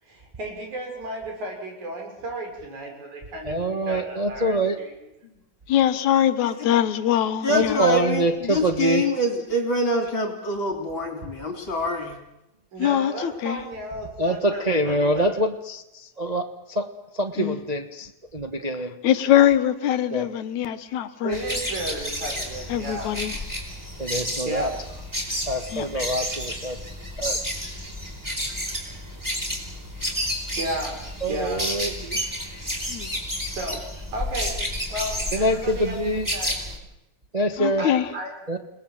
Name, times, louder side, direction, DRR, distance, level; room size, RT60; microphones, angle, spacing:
voice 1, 0.0-5.1 12.7-15.3 21.2-23.1 24.4-24.7 28.5-28.6 30.6-31.0 31.3-31.7 33.5-33.8 34.1-34.5 34.9-36.5 37.8-38.3, right 1 dB, 75° right, 7.8 m, -33 dB
voice 2, 3.5-4.8 7.5-9.0 14.2-16.9 17.1-18.9 20.1-20.3 24.0-24.7 25.5-26.8 27.2-27.4 31.2-32.2 35.3-36.3 37.3-37.8 38.5-38.6, right 1 dB, 25° right, 0.8 m, -25 dB
voice 3, 5.7-7.9 12.8-13.6 17.4-17.6 19.0-21.4 22.7-23.4 25.7-25.9 32.9-33.2 37.6-38.1, left 11 dB, 75° left, 2.5 m, -22 dB
voice 4, 6.4-6.7 7.4-12.2 25.9-26.0, left 1 dB, 40° left, 3.7 m, -26 dB
sound 1, 21.3-36.8, equal, 5° right, 4.5 m, -31 dB
29.5 x 20.0 x 7.7 m
omnidirectional pair, 3.4 m